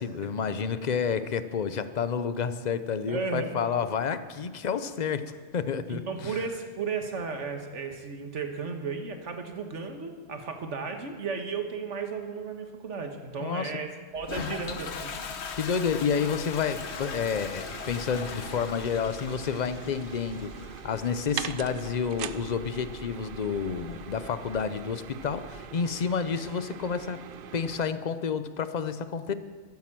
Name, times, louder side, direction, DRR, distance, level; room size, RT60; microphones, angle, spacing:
voice 1, 0.0-6.3 13.4-13.8 15.5-20.6 20.8-27.3 27.5-29.3, left 6 dB, 45° left, 12 dB, 0.7 m, -30 dB
voice 2, 3.1-3.6 5.9-15.1, right 5 dB, 90° right, 5 dB, 1.7 m, -34 dB
Toilet flush, 14.1-25.6, left 5 dB, 70° left, 1.2 m, -41 dB
sound 1, 16.7-27.9, right 9 dB, 60° right, 0.7 m, -42 dB
13.0 x 9.5 x 7.6 m, 1.5 s
omnidirectional pair, 1.2 m